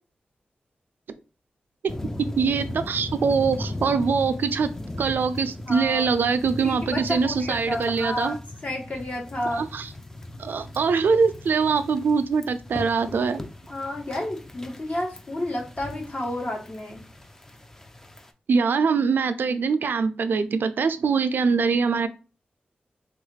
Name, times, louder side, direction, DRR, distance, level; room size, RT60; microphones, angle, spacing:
sound 1, 1.9-18.3, left 1 dB, 15° left, 0.4 m, -38 dB
voice 1, 2.4-4.7 5.0-8.4 9.5-9.9 10.4-13.4 18.5-22.1, right 5 dB, 80° right, 0.3 m, -23 dB
voice 2, 5.7-6.1 6.6-8.4 8.6-9.6 13.4-13.5 13.7-17.0, left 1 dB, 45° left, 1.1 m, -31 dB
3.3 x 2.3 x 3.2 m
wide cardioid pair, 80°, 3 cm